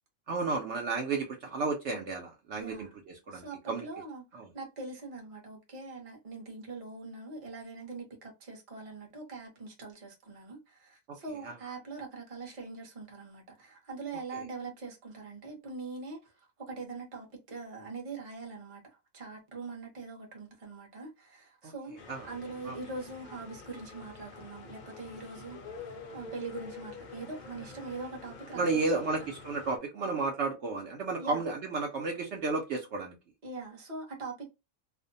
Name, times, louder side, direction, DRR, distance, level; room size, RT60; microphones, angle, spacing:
voice 1, 0.3-3.9 4.3-4.5 11.1-11.2 11.4-11.5 14.3-14.4 21.6-21.7 22.1-22.3 22.6-22.8 28.5-33.1, right 3 dB, 65° right, 0.9 m, -32 dB
voice 2, 2.6-2.9 3.3-18.8 19.1-22.0 22.2-25.8 26.1-29.1 31.2-31.4 33.4-34.5, right 3 dB, 30° right, 0.8 m, -43 dB
sound 1, 22.0-29.8, left 4 dB, 75° left, 0.4 m, -47 dB
2.5 x 2.1 x 2.6 m
omnidirectional pair, 1.4 m